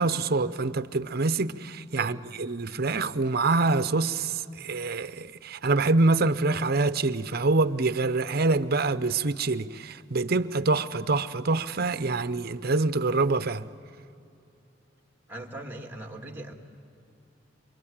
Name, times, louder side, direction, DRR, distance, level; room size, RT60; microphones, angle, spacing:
voice 1, 0.0-13.7, right 3 dB, 55° right, 0.8 m, -25 dB
voice 2, 2.0-2.3 15.3-16.5, right 1 dB, 10° right, 2.2 m, -40 dB
27.0 x 24.5 x 8.9 m
head